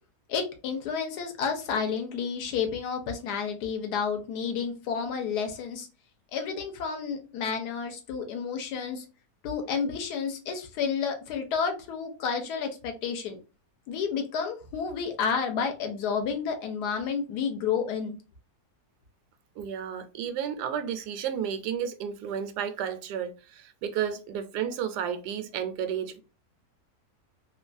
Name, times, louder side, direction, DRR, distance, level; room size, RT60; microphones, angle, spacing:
voice 1, 0.3-5.9 6.3-9.1 9.4-13.4 13.9-18.1, left 6 dB, 90° left, 1.3 m, -30 dB
voice 2, 19.6-26.2, right 8 dB, 85° right, 1.1 m, -32 dB
3.1 x 2.3 x 2.4 m
omnidirectional pair, 1.7 m